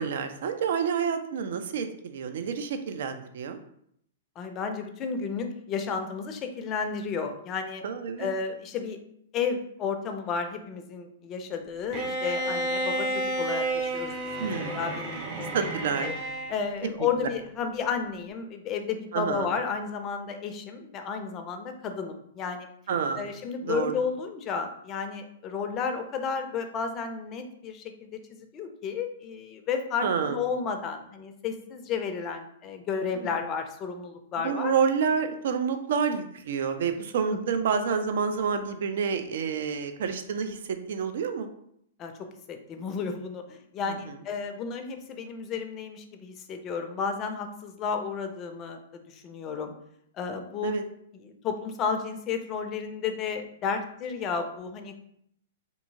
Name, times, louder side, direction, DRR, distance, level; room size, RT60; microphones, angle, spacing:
voice 1, 0.0-3.6 7.8-8.3 14.4-14.8 15.5-16.1 19.1-19.5 22.9-23.3 23.6-23.9 30.0-30.4 33.1-33.4 34.4-41.5 43.9-44.1 50.6-50.8, right 6 dB, 60° right, 8 dB, 0.3 m, -28 dB
voice 2, 4.4-7.8 8.2-9.0 9.3-14.1 14.4-15.7 16.0-16.1 16.5-22.7 23.2-34.7 37.3-37.4 42.0-42.1 42.5-49.7 50.1-50.7 51.2-55.0, left 6 dB, 30° left, 6 dB, 0.4 m, -32 dB
Bowed string instrument, 11.9-16.6, right 1 dB, 35° right, 0.7 m, -31 dB
2.7 x 2.6 x 2.6 m, 0.71 s
figure-of-eight pair, 110°, 0 cm